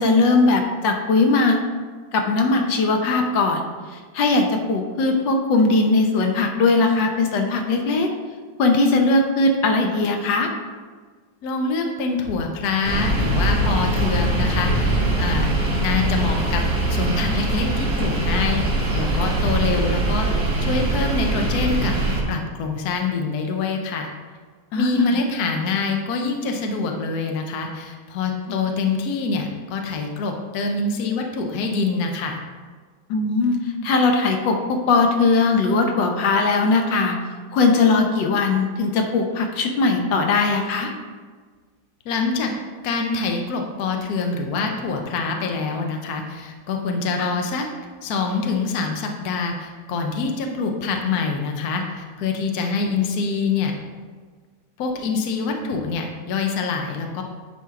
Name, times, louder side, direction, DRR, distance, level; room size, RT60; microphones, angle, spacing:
voice 1, 0.0-1.6 2.1-8.1 8.6-10.5 24.7-25.1 28.5-28.6 33.1-37.2 37.5-40.9 47.2-47.3, left 3 dB, 80° left, 3 dB, 1.5 m, -19 dB
voice 2, 11.4-16.6 16.9-18.6 18.9-20.3 20.6-21.9 22.3-24.1 24.8-32.4 42.0-42.5 42.8-47.6 48.0-53.7 54.8-57.2, left 4 dB, 65° left, 3 dB, 1.2 m, -25 dB
sound 1, 12.8-22.2, right 1 dB, 60° right, 2.0 m, -22 dB
10.0 x 4.4 x 3.6 m, 1.5 s
omnidirectional pair, 2.0 m